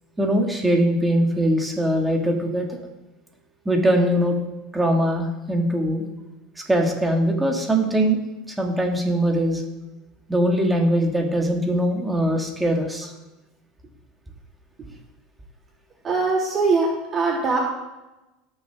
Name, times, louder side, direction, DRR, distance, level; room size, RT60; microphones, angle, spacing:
voice 1, 0.2-2.7 3.7-4.4 4.7-6.1 6.7-8.2 8.6-9.6 10.3-13.1, right 1 dB, 10° right, 1 dB, 2.0 m, -21 dB
voice 2, 16.0-17.6, right 3 dB, 30° right, -5 dB, 3.5 m, -21 dB
18.0 x 6.4 x 3.6 m, 1.0 s
supercardioid pair, 120°, 0 cm